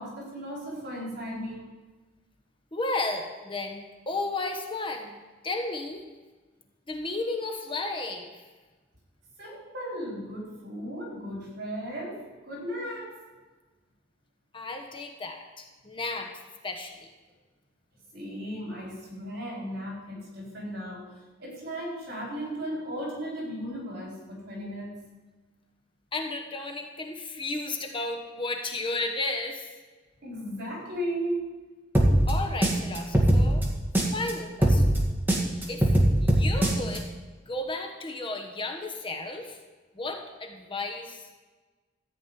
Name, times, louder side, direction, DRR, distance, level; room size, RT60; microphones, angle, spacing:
voice 1, 0.0-1.7 9.4-13.2 18.1-25.1 30.2-31.4, equal, 60° right, -3 dB, 4.8 m, -36 dB
voice 2, 2.7-5.2 5.4-6.0 6.9-8.4 14.5-16.3 16.6-17.1 26.1-29.7 32.3-33.6 34.1-34.8 35.7-35.9 36.2-37.1 37.5-39.6 39.9-41.4, left 2 dB, 30° left, 3 dB, 1.2 m, -33 dB
sound 1, 31.9-34.3 34.6-37.0, right 1 dB, 10° right, 2.0 m, -21 dB
14.0 x 5.2 x 9.2 m, 1.3 s
head